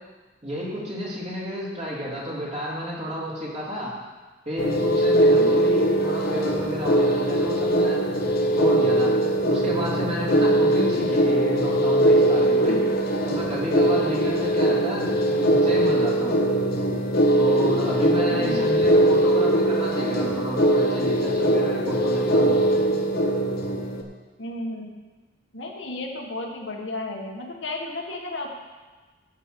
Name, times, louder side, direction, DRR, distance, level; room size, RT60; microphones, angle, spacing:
voice 1, 0.4-3.9 4.4-8.1 8.5-9.1 9.5-12.8 13.2-16.4 17.4-22.6, equal, 40° right, -6 dB, 3.2 m, -31 dB
sound 1, 4.6-24.0, right 1 dB, 55° left, 1.0 m, -21 dB
voice 2, 18.3-18.7 24.4-24.9 25.5-28.5, left 2 dB, 80° left, 1 dB, 1.5 m, -33 dB
13.0 x 6.0 x 5.2 m, 1.3 s
head